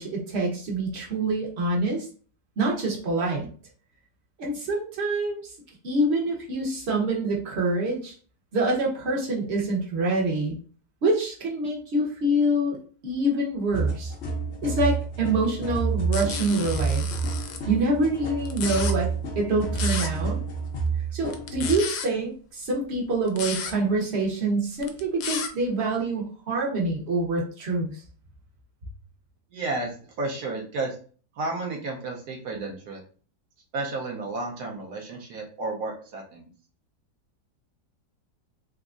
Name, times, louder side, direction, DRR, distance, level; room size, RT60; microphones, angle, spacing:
voice 1, 0.0-2.1 2.6-3.5 4.4-5.4 5.8-8.1 8.5-10.5 11.0-12.8 13.0-14.1 14.6-17.1 17.7-19.1 19.4-20.4 21.1-28.0, right 2 dB, 45° right, -2 dB, 1.0 m, -26 dB
sound 1, 13.7-21.8, right 4 dB, 55° left, 0.8 m, -29 dB
sound 2, 16.1-17.6 18.4-18.9 19.7-20.1 21.3-22.1 23.3-23.7 24.8-25.5, left 7 dB, 75° left, 1.1 m, -32 dB
voice 2, 29.5-31.0 31.4-33.0 33.7-36.5, right 2 dB, 70° right, -1 dB, 1.2 m, -32 dB
3.5 x 2.9 x 2.4 m, 0.42 s
omnidirectional pair, 1.9 m